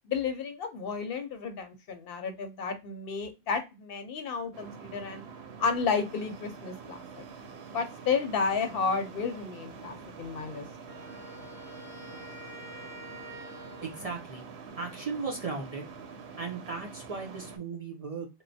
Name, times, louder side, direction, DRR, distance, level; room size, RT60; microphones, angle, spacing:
voice 1, 0.0-5.2 5.6-7.0 7.7-10.7, left 5 dB, 65° left, 7 dB, 0.7 m, -32 dB
sound 1, 4.5-17.6, right 5 dB, 85° right, 0.8 m, -46 dB
Wind instrument woodwind instrument, 10.9-14.2, left 1 dB, 5° right, 1.0 m, -47 dB
voice 2, 13.8-14.4 14.7-15.9 16.4-18.3, right 4 dB, 45° right, 2 dB, 0.5 m, -36 dB
3.0 x 2.0 x 2.6 m, 0.25 s
omnidirectional pair, 1.1 m